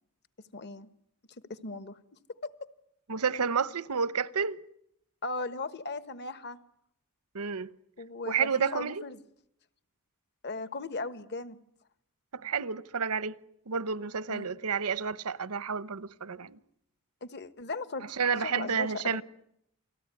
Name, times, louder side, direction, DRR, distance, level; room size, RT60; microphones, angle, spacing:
voice 1, 0.5-0.9 1.5-2.0 2.4-2.5 5.2-6.6 8.0-9.2 10.4-11.6 14.3-14.5 17.2-18.1 18.4-19.2, left 3 dB, 50° left, 1.3 m, -37 dB
voice 2, 3.1-4.6 7.3-7.7 8.3-9.0 12.3-13.4 13.7-16.6 18.1-19.2, right 6 dB, 85° right, 1.0 m, -30 dB
29.0 x 19.0 x 9.7 m
head